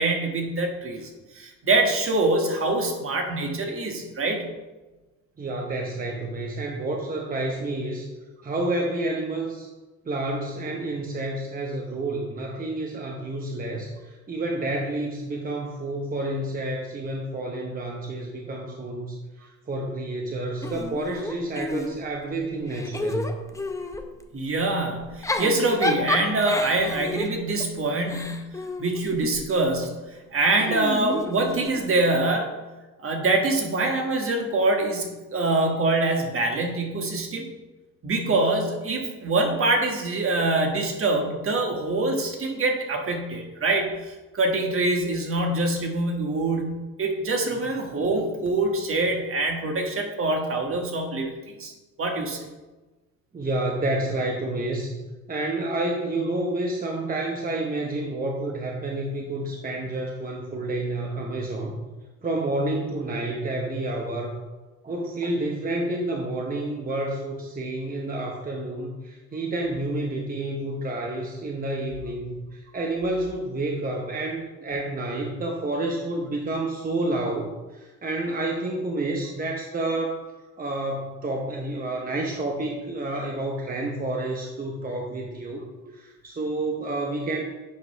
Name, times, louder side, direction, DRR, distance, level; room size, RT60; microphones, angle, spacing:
voice 1, 0.0-4.5 24.3-30.0 30.3-32.5 33.0-37.5 38.0-51.3 51.6-51.7 52.0-52.5, right 2 dB, 45° right, 2 dB, 1.4 m, -25 dB
voice 2, 5.4-8.1 8.4-9.7 10.0-23.4 53.3-55.0 55.3-61.8 62.2-64.4 64.8-80.2 80.6-87.4, right 2 dB, 30° right, 0 dB, 0.9 m, -29 dB
Giggle / Chuckle chortle, 20.6-22.2 22.7-24.1 25.0-29.5 30.6-32.0, left 2 dB, 10° left, 0.6 m, -30 dB
8.4 x 3.0 x 5.4 m, 1.2 s
cardioid pair, 90°, 30 cm